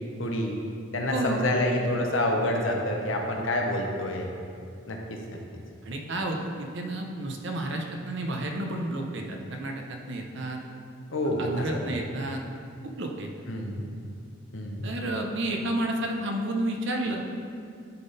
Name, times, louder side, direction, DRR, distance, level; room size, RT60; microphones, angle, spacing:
voice 1, 0.2-0.6 0.9-4.3 4.9-5.4 11.1-11.8 13.5-13.8 14.5-14.9, left 1 dB, 70° left, 1 dB, 0.9 m, -28 dB
voice 2, 1.1-1.4 5.8-10.6 11.4-12.4 12.8-13.3 14.8-17.2, right 1 dB, 60° right, 2 dB, 0.8 m, -31 dB
10.5 x 3.8 x 4.0 m, 2.3 s
head